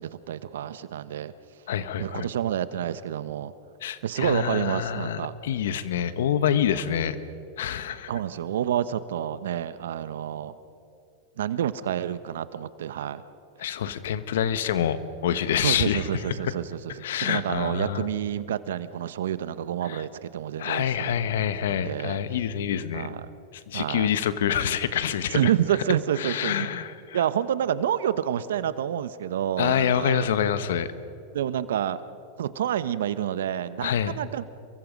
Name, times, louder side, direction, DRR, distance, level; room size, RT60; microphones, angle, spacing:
voice 1, 0.0-1.3 2.0-3.5 4.0-5.3 8.1-10.6 11.4-13.2 15.6-16.9 17.2-22.2 22.9-23.2 23.7-24.1 25.3-26.7 27.1-30.3 31.3-32.0 32.4-34.4, right 10 dB, 80° right, 14 dB, 1.1 m, -28 dB
voice 2, 1.7-2.3 3.8-7.2 7.6-8.1 13.6-16.1 17.0-18.1 19.8-20.0 20.6-23.1 23.7-25.5 26.2-27.2 29.6-30.9 33.8-34.2, left 9 dB, 75° left, 12 dB, 1.4 m, -26 dB
29.5 x 23.5 x 5.4 m, 2.7 s
hypercardioid pair, 110°, 0 cm